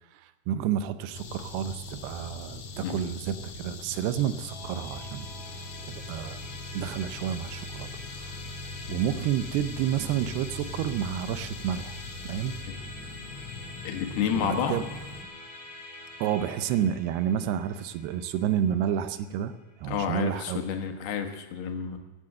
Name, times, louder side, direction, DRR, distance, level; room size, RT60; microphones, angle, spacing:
voice 1, 0.1-6.4 6.7-8.4 8.9-12.0 12.2-12.6 14.3-14.8 16.2-20.6, right 10 dB, 90° right, 11 dB, 2.8 m, -30 dB
sound 1, 1.1-15.2, left 3 dB, 55° left, 2.1 m, -41 dB
voice 2, 2.8-3.1 8.9-9.0 13.8-14.9 19.9-22.0, left 7 dB, 80° left, 5 dB, 3.3 m, -30 dB
Musical instrument, 4.5-20.0, left 2 dB, 35° left, 3.0 m, -46 dB
15.0 x 10.5 x 7.7 m, 1.1 s
omnidirectional pair, 4.6 m